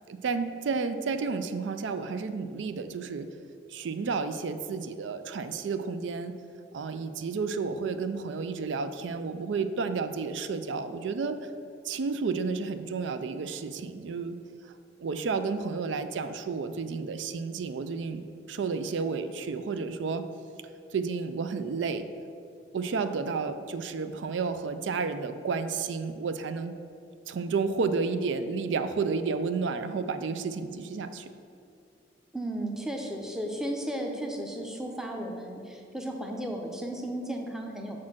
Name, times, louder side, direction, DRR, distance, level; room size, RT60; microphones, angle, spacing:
voice 1, 0.1-3.3 3.7-6.4 6.7-11.5 11.8-14.4 15.0-18.2 18.5-20.3 20.9-22.1 22.7-26.7 27.3-31.3, right 4 dB, 85° right, 10 dB, 0.4 m, -31 dB
voice 2, 32.3-38.0, right 1 dB, 5° right, 2 dB, 0.6 m, -34 dB
6.2 x 4.3 x 6.0 m, 2.4 s
head